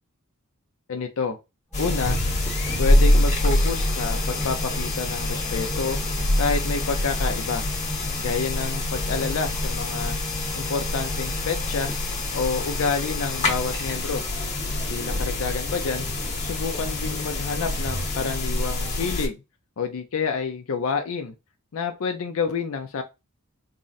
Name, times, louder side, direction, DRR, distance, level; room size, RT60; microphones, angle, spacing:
voice 1, 0.9-1.4 1.8-2.2 2.8-6.0 6.4-7.7 8.2-10.2 10.5-11.9 12.3-14.2 14.9-16.1 16.4-19.4 19.8-21.3 21.7-23.0, left 5 dB, 65° left, 0.5 m, -28 dB
sound 1, 1.7-19.3, left 1 dB, 30° left, 1.1 m, -25 dB
Organ, 1.7-12.6, left 1 dB, 10° left, 0.9 m, -39 dB
sound 2, 2.1-4.6, equal, 70° right, 0.9 m, -35 dB
3.7 x 2.1 x 3.9 m
head